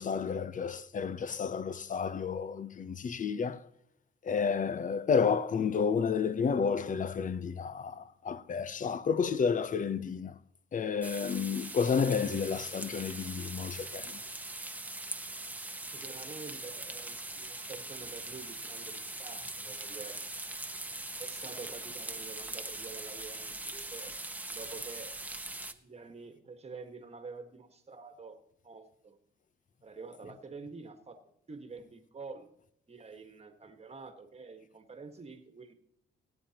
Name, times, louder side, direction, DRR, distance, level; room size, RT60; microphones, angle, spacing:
voice 1, 0.0-3.7 4.2-10.4 10.7-14.2, left 6 dB, 40° left, 0.8 m, -31 dB
sound 1, 11.0-25.7, right 2 dB, 10° right, 1.0 m, -41 dB
voice 2, 15.8-20.2 21.2-24.1 24.5-25.1 25.7-28.4 28.6-29.2 29.8-31.2 31.5-32.5 32.9-35.7, right 4 dB, 30° right, 1.5 m, -47 dB
20.5 x 9.0 x 2.9 m
cardioid pair, 90°, 20 cm